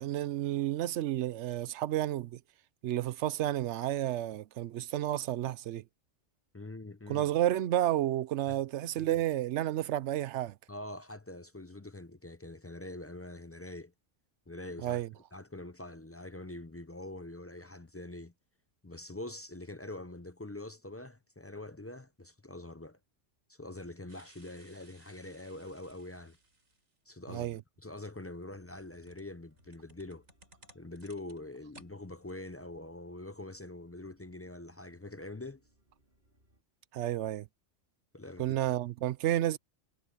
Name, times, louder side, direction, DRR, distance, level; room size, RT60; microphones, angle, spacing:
voice 1, 0.0-2.4 2.8-5.8 7.1-10.6 14.8-15.1 27.3-27.6 36.9-37.5 38.4-39.6, right 13 dB, 70° right, 0.8 m, -31 dB
voice 2, 6.5-7.3 8.5-8.6 9.0-9.2 10.7-13.9 14.5-15.0 15.3-18.3 18.8-23.0 23.5-26.4 27.1-30.2 30.7-35.6 38.1-38.6, left 2 dB, 25° left, 0.3 m, -44 dB
sound 1, 24.1-27.0 28.0-31.9 32.2-32.3, right 2 dB, 85° right, 4.6 m, -61 dB
sound 2, 28.4-36.6, right 1 dB, 45° right, 4.8 m, -71 dB
omnidirectional pair, 1.3 m